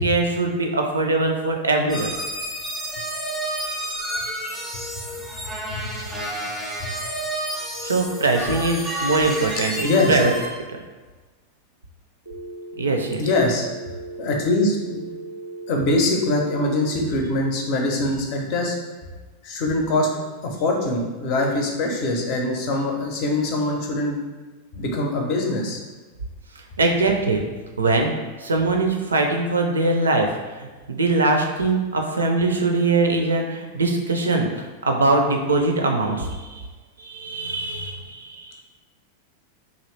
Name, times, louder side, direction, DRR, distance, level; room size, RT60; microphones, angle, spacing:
voice 1, 0.0-2.1 7.8-10.3 10.7-10.8 12.8-13.2 26.8-27.4 27.8-28.1 28.4-30.3 30.6-36.7 37.0-38.6, right 3 dB, 75° right, 3 dB, 0.4 m, -22 dB
sound 1, 1.9-10.5, right 1 dB, ahead, 0.7 m, -30 dB
voice 2, 9.8-10.2 13.2-13.6 14.2-15.0 15.7-18.8 19.4-20.1 20.4-24.2 24.7-25.8, left 2 dB, 45° left, 1 dB, 0.6 m, -23 dB
Telephone, 12.3-17.3, right 3 dB, 85° left, 0.8 m, -37 dB
2.9 x 2.5 x 3.1 m, 1.3 s
figure-of-eight pair, 90°, 0 cm